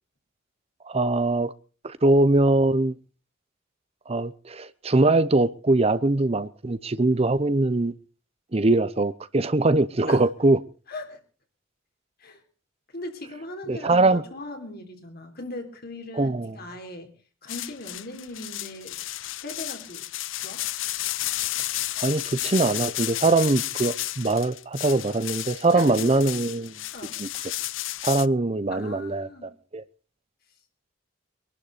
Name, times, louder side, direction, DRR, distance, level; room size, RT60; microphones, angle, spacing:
voice 1, 0.8-1.5 1.8-2.9 4.1-7.9 8.5-10.6 13.7-14.2 16.1-16.6 22.0-26.7 27.2-27.3 28.0-29.8, right 2 dB, 30° right, 0.7 m, -22 dB
voice 2, 10.9-11.2 12.2-12.4 12.9-17.1 17.4-19.0 19.4-20.0 20.4-20.6 25.7-26.3 26.9-27.2 28.7-29.5, left 1 dB, 50° left, 3.6 m, -38 dB
sound 1, 17.5-28.3, left 15 dB, 70° left, 0.6 m, -32 dB
23.5 x 12.0 x 4.1 m
head